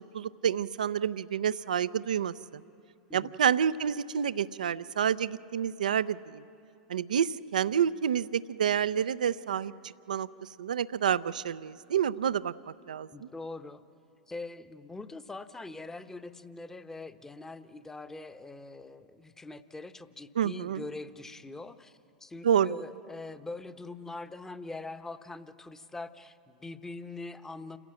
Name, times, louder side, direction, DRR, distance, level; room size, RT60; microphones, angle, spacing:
voice 1, 0.1-2.6 3.1-6.4 6.9-12.5 12.9-13.3 20.4-20.8 22.4-22.8, right 8 dB, 80° right, 16 dB, 0.5 m, -29 dB
voice 2, 13.1-13.8 14.3-27.8, left 3 dB, 10° left, 11 dB, 0.9 m, -43 dB
28.5 x 16.0 x 7.6 m, 2.8 s
hypercardioid pair, 100°, 4 cm